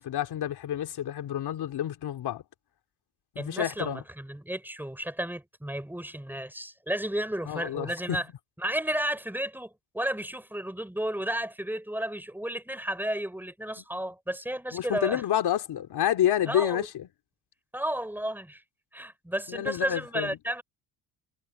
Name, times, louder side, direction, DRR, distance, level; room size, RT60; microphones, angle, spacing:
voice 1, 0.0-2.4 3.3-4.0 7.5-8.2 14.7-17.1 19.5-20.4, left 11 dB, 65° left, 3.1 m, -29 dB
voice 2, 3.4-8.3 8.6-15.2 16.5-16.9 17.7-18.6 18.9-20.6, right 1 dB, 5° right, 5.9 m, -33 dB
cardioid pair, 95°, 42 cm